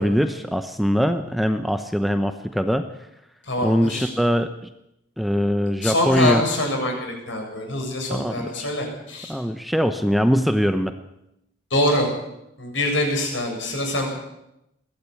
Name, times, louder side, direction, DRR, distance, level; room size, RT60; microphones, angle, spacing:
voice 1, 0.0-2.9 3.6-4.5 5.2-6.4 8.1-8.7 9.3-10.9, equal, ahead, 8 dB, 0.8 m, -22 dB
voice 2, 3.5-4.1 5.8-9.3 11.7-12.1 12.6-14.1, left 1 dB, 70° left, 2 dB, 7.6 m, -24 dB
22.0 x 16.0 x 8.5 m, 0.86 s
head